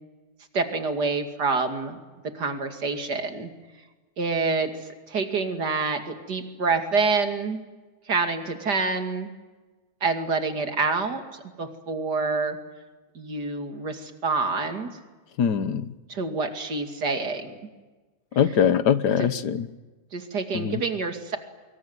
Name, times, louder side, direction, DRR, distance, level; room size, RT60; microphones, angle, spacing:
voice 1, 0.5-2.0 2.3-3.5 4.2-4.7 5.1-7.6 8.1-9.3 10.0-12.6 13.1-14.9 16.1-17.5 18.5-18.6 19.2-19.3 20.1-21.4, right 4 dB, 75° right, 6 dB, 3.1 m, -27 dB
voice 2, 15.4-15.8 18.4-19.6 20.5-20.8, left 8 dB, 80° left, 14 dB, 1.7 m, -22 dB
25.0 x 22.5 x 9.7 m, 1.3 s
omnidirectional pair, 1.8 m